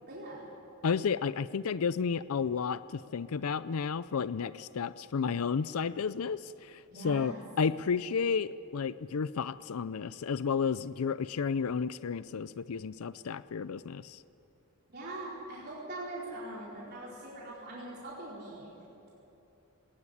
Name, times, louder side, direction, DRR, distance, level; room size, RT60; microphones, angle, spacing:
voice 1, 0.0-0.5 6.9-7.4 14.9-18.7, right 2 dB, 45° right, -6 dB, 4.5 m, -42 dB
voice 2, 0.8-14.2, left 6 dB, 75° left, 16 dB, 0.5 m, -32 dB
20.0 x 18.5 x 9.8 m, 3.0 s
head